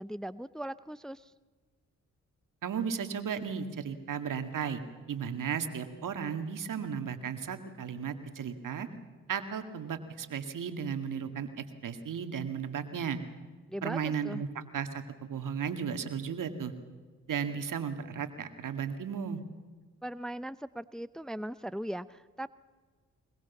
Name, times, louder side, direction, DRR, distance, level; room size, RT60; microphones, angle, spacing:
voice 1, 0.0-1.3 13.7-14.4 20.0-22.5, right 1 dB, ahead, 15 dB, 0.7 m, -39 dB
voice 2, 2.6-4.8 5.1-8.9 9.3-13.2 13.8-14.5 14.7-16.7 17.3-19.4, right 7 dB, 65° right, 8 dB, 2.1 m, -35 dB
21.5 x 21.5 x 7.2 m, 1.4 s
supercardioid pair, 45°, 34 cm